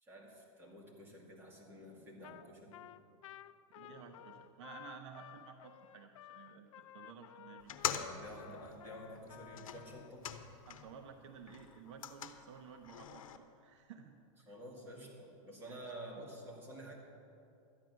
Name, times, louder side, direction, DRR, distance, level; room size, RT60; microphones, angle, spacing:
voice 1, 0.0-2.8 3.8-4.1 8.0-10.3 14.5-16.9, equal, 15° right, -3 dB, 2.3 m, -50 dB
Trumpet, 2.2-2.5 2.7-10.1, left 12 dB, 70° left, 0.5 m, -54 dB
voice 2, 3.8-7.7 10.7-14.1 14.4-14.5 15.7-15.9, right 7 dB, 60° right, 5 dB, 0.9 m, -54 dB
sound 1, 7.6-11.0 11.3-13.4, left 9 dB, 85° left, 0.9 m, -44 dB
13.0 x 9.3 x 6.2 m, 2.6 s
supercardioid pair, 155°, 17 cm